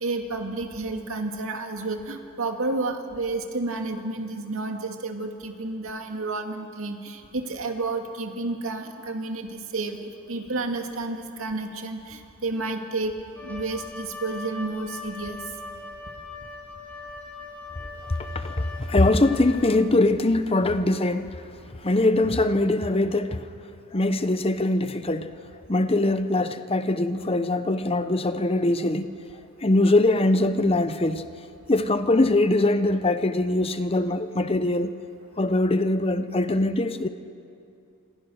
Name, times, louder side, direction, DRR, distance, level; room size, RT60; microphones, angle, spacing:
voice 1, 0.0-15.4, right 3 dB, 65° right, 4 dB, 2.3 m, -31 dB
Wind instrument woodwind instrument, 13.3-19.9, left 3 dB, 10° left, 3.5 m, -40 dB
voice 2, 18.1-21.4 21.8-23.5 23.9-25.3 25.7-29.1 29.6-31.3 31.7-34.9 35.4-37.1, left 2 dB, 25° left, 11 dB, 0.8 m, -22 dB
28.0 x 26.5 x 6.5 m, 2.5 s
head